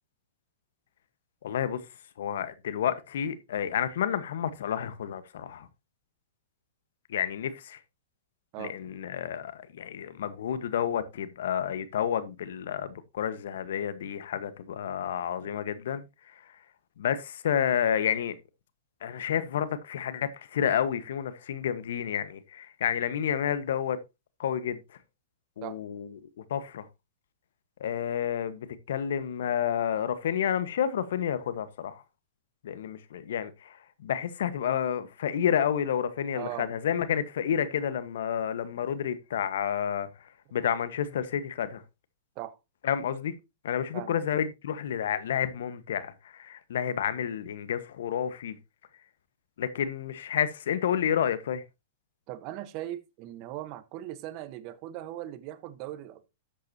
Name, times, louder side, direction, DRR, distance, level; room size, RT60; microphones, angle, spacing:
voice 1, 1.4-1.8 2.2-5.7 7.1-7.8 8.6-16.3 17.0-18.3 19.0-24.0 24.4-24.8 25.6-26.1 26.4-26.9 27.8-32.0 32.6-40.1 40.5-41.8 42.8-43.3 43.6-48.6 49.6-51.6, left 9 dB, 75° left, 1.4 m, -30 dB
voice 2, 36.3-36.7 42.4-42.6 43.9-44.2 52.3-56.3, right 14 dB, 45° right, 1.2 m, -39 dB
12.5 x 8.4 x 2.9 m
hypercardioid pair, 125°, 0 cm